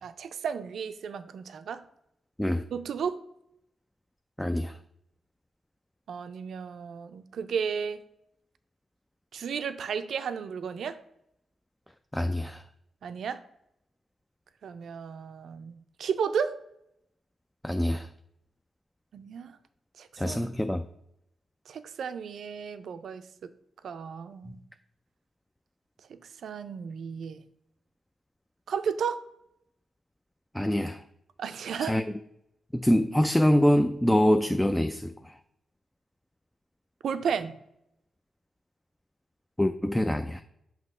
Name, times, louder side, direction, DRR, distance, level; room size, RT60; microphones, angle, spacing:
voice 1, 0.0-1.8 2.7-3.2 6.1-8.0 9.3-11.0 13.0-13.4 14.6-16.6 19.1-19.6 20.0-20.4 21.7-23.5 23.8-24.6 26.1-27.4 28.7-29.2 31.4-32.0 37.0-37.6, right 6 dB, 75° right, 11 dB, 0.4 m, -33 dB
voice 2, 4.4-4.8 12.1-12.6 17.6-18.1 20.2-20.9 30.5-31.0 31.8-32.0 32.7-35.3 39.6-40.4, equal, 10° left, 8 dB, 0.3 m, -25 dB
6.2 x 2.8 x 5.4 m, 0.77 s
cardioid pair, 55°, 0 cm